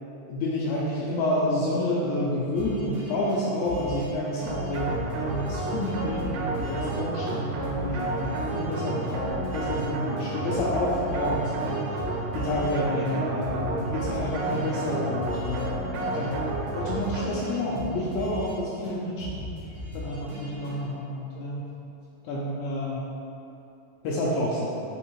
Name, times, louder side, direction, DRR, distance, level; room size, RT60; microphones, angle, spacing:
voice 1, 0.3-12.0 12.3-19.4 19.9-21.6 22.3-23.0 24.0-24.8, left 1 dB, 80° left, -7 dB, 1.7 m, -29 dB
sound 1, 2.5-4.1 4.4-7.0 7.3-7.4 7.6-9.9 10.2-12.8 13.1-15.7 15.9-18.6 18.8-20.9, left 1 dB, 60° right, 1.9 m, -39 dB
sound 2, 4.5-17.7, right 2 dB, 80° right, 2.1 m, -31 dB
4.8 x 3.5 x 3.0 m, 2.8 s
omnidirectional pair, 3.8 m